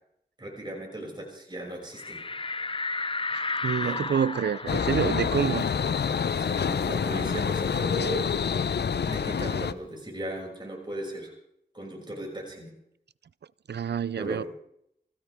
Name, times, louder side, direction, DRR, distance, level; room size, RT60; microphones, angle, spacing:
voice 1, 0.4-2.3 3.3-3.4 3.8-4.1 6.4-8.3 9.0-11.3 11.7-12.7 14.2-14.5, right 1 dB, 25° right, 6.6 m, -37 dB
sound 1, 2.0-7.2 7.5-7.6 7.9-9.6, left 3 dB, 30° left, 0.6 m, -34 dB
voice 2, 3.3-5.7 13.7-14.4, right 7 dB, 85° right, 0.5 m, -28 dB
sound 2, 4.7-9.7, left 6 dB, 85° left, 0.7 m, -27 dB
25.0 x 16.0 x 3.6 m
cardioid pair, 50°, 17 cm